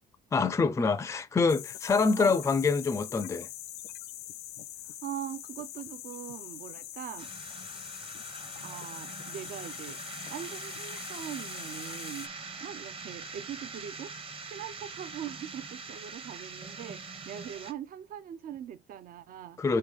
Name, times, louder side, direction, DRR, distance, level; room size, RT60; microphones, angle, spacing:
voice 1, 0.3-3.5 19.6-19.8, left 4 dB, 15° left, 0.4 m, -26 dB
sound 1, 1.5-12.3, left 13 dB, 65° left, 0.5 m, -43 dB
voice 2, 4.8-7.3 7.6-7.8 8.6-10.0 10.3-12.3 12.6-14.1 14.4-19.7, right 10 dB, 55° right, 0.6 m, -41 dB
sound 2, 7.2-17.7, right 4 dB, 35° right, 0.9 m, -43 dB
3.9 x 3.3 x 3.4 m
cardioid pair, 110°, 17 cm